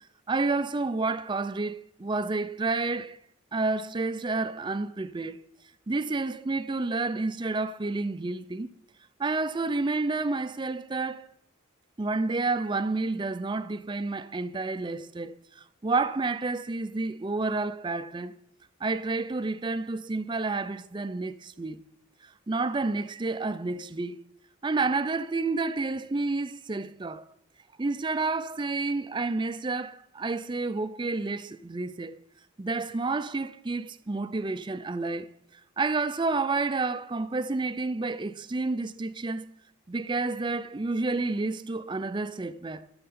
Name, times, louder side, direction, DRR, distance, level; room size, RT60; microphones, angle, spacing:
voice 1, 0.3-3.2 3.5-5.4 5.9-8.7 9.2-11.3 12.0-18.3 18.8-21.8 22.5-24.2 24.6-27.2 27.8-32.2 32.6-35.3 35.5-39.5 39.9-42.9, right 3 dB, 20° right, 0.4 m, -30 dB
12.5 x 7.6 x 4.3 m
head